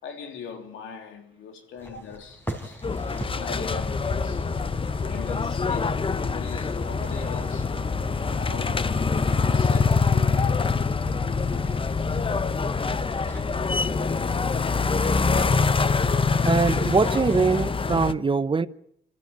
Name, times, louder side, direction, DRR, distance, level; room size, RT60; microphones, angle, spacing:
voice 1, 0.0-2.8 3.3-4.5 5.0-7.7 8.2-9.2 9.5-10.7, left 6 dB, 90° left, 3.4 m, -41 dB
sound 1, 1.8-17.6, equal, 10° left, 4.2 m, -43 dB
sound 2, 2.8-18.1, left 4 dB, 25° left, 0.9 m, -24 dB
voice 2, 16.4-18.7, right 4 dB, 25° right, 0.8 m, -22 dB
27.0 x 14.0 x 9.4 m
cardioid pair, 90°, 20 cm